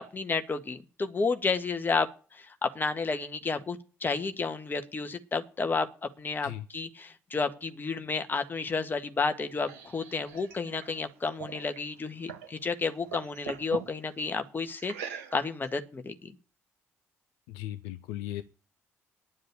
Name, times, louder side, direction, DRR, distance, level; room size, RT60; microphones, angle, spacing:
voice 1, 0.0-5.9 6.2-16.3, left 4 dB, 30° left, 1.8 m, -31 dB
sound 1, 9.2-12.5 12.9-13.9 14.8-15.7, right 7 dB, 70° right, 1.7 m, -43 dB
voice 2, 17.5-18.4, left 14 dB, 65° left, 0.7 m, -37 dB
10.5 x 7.5 x 8.8 m
figure-of-eight pair, 45°, 7 cm